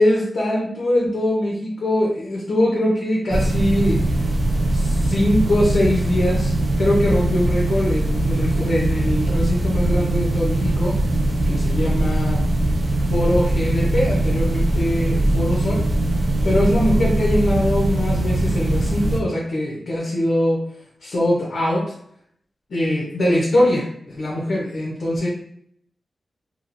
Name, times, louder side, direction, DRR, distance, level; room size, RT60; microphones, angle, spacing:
voice 1, 0.0-4.0 4.7-6.5 6.8-10.9 11.5-12.4 13.1-15.8 16.4-20.6 21.0-21.8 22.7-25.3, left 1 dB, 70° left, -5 dB, 0.8 m, -22 dB
sound 1, 3.3-19.2, right 1 dB, 50° right, 0.4 m, -21 dB
2.9 x 2.3 x 2.6 m, 0.67 s
wide cardioid pair, 180°, 0 cm